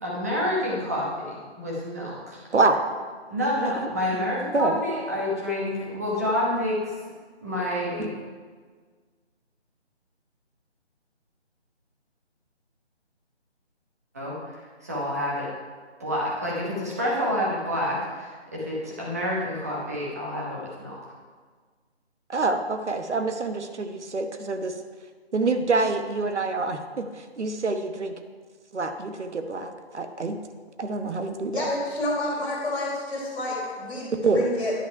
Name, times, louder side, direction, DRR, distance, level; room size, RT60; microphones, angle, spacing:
voice 1, 0.0-2.4 3.3-6.9 7.4-8.1 14.1-15.5 16.0-21.0, left 1 dB, 15° right, -5 dB, 1.0 m, -28 dB
voice 2, 3.6-4.2 4.5-4.8 8.0-8.1 22.3-24.7 25.3-28.1 28.7-30.4 30.8-31.7 34.2-34.5, right 3 dB, 80° right, 7 dB, 1.1 m, -26 dB
voice 3, 31.5-34.7, left 1 dB, ahead, -18 dB, 1.5 m, -29 dB
10.0 x 5.4 x 5.6 m, 1.5 s
figure-of-eight pair, 170°, 34 cm